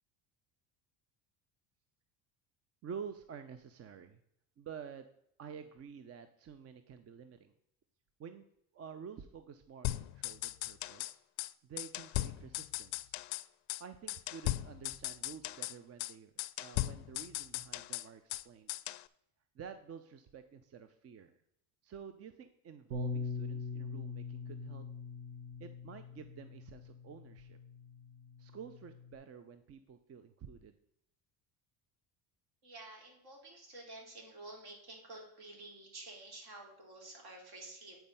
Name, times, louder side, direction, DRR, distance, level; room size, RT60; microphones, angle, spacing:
voice 1, 2.8-4.2 4.6-5.1 5.4-7.5 8.2-8.4 8.7-11.2 11.6-13.2 13.8-18.7 19.5-21.4 21.8-24.8 25.6-27.6 28.4-30.7, right 7 dB, 35° right, 10 dB, 0.5 m, -50 dB
sound 1, 9.8-11.1 11.4-11.5 11.8-13.4 13.7-13.8 14.1-15.7 16.0-16.1 16.4-18.4 18.7-19.0, left 17 dB, 60° left, 0.5 m, -38 dB
Bass guitar, 22.9-29.1, left 4 dB, 75° right, 1.4 m, -43 dB
voice 2, 32.6-38.0, right 2 dB, 55° right, 0 dB, 3.4 m, -50 dB
9.2 x 4.5 x 5.5 m, 0.74 s
cardioid pair, 110°, 44 cm